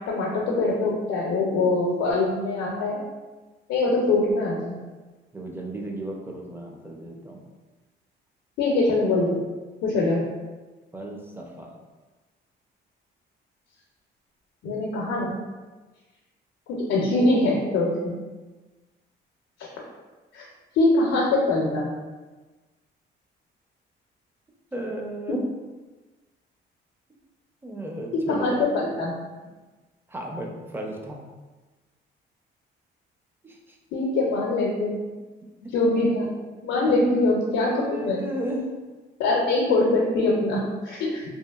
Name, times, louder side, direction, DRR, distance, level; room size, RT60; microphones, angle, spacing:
voice 1, 0.1-3.0 3.7-4.8 8.6-9.4 9.8-10.2 14.6-15.3 16.7-18.2 20.3-20.4 20.7-21.9 28.1-29.1 33.9-35.0 35.7-36.3 36.6-38.2 39.2-41.2, left 2 dB, 90° left, -3 dB, 0.5 m, -23 dB
voice 2, 5.3-7.4 10.9-11.8 24.7-25.5 27.6-28.9 30.1-31.2 33.4-33.8 36.9-37.0 37.7-38.7, right 1 dB, 10° right, 0 dB, 0.4 m, -34 dB
2.7 x 2.4 x 2.3 m, 1.3 s
cardioid pair, 90°, 20 cm